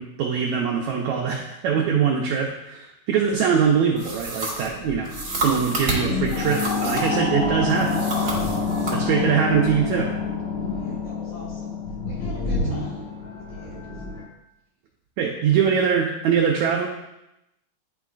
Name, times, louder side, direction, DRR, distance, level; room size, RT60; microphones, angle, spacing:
voice 1, 0.0-5.1 5.4-8.4 8.9-10.1 15.2-16.9, right 7 dB, 90° right, 0 dB, 1.6 m, -23 dB
sound 1, 4.0-7.3 7.7-9.0, right 2 dB, 55° right, 0.9 m, -30 dB
sound 2, 4.8-14.2, left 4 dB, 90° left, 0.9 m, -27 dB
voice 2, 5.7-6.4 10.7-11.8 12.0-13.8, left 3 dB, 55° left, -5 dB, 2.3 m, -44 dB
10.0 x 4.4 x 2.4 m, 0.88 s
omnidirectional pair, 3.9 m